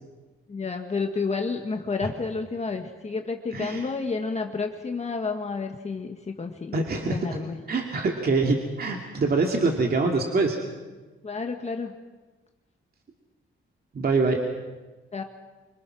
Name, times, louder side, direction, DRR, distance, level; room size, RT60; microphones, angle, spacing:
voice 1, 0.5-7.6 11.2-11.9 15.1-15.2, left 4 dB, 30° left, 4 dB, 1.6 m, -30 dB
voice 2, 3.5-3.9 6.7-7.2 7.7-10.6 13.9-14.4, right 3 dB, 45° right, 2 dB, 2.5 m, -24 dB
26.0 x 24.5 x 6.2 m, 1.2 s
wide cardioid pair, 135°, 21 cm